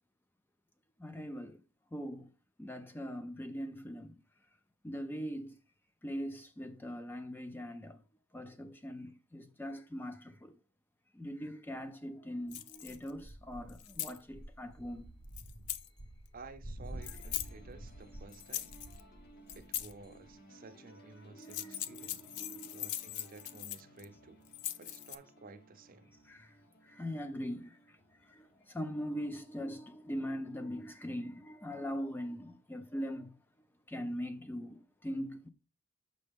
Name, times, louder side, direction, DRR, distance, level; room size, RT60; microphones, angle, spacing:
voice 1, 1.0-1.6 1.9-2.3 2.6-4.2 4.8-5.6 6.0-8.0 8.3-10.6 11.1-15.1 21.3-22.9 26.2-26.6 26.8-33.4 33.9-35.5, equal, 10° left, 0.3 m, -41 dB
sound 1, 12.5-13.1 13.7-14.2 15.4-15.9 17.0-17.5 18.3-19.0 19.5-19.9 21.4-24.0 24.5-25.2, left 12 dB, 90° left, 0.4 m, -40 dB
sound 2, 12.8-20.3, right 1 dB, 75° left, 1.6 m, -49 dB
voice 2, 16.3-18.7 19.5-22.2 22.7-24.4 24.8-26.2, right 3 dB, 40° right, 0.6 m, -53 dB
sound 3, 16.9-30.7, equal, 45° left, 1.0 m, -60 dB
6.4 x 5.2 x 3.4 m
head